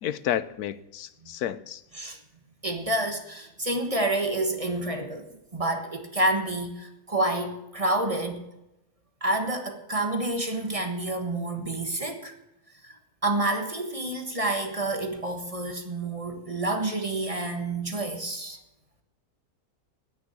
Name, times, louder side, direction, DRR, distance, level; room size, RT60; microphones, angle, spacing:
voice 1, 0.0-1.8, left 10 dB, 80° left, 1.2 m, -31 dB
voice 2, 2.6-8.4 9.2-12.3 12.8-13.0 13.2-18.6, right 2 dB, 25° right, 1.4 m, -28 dB
9.8 x 9.4 x 8.5 m
omnidirectional pair, 1.6 m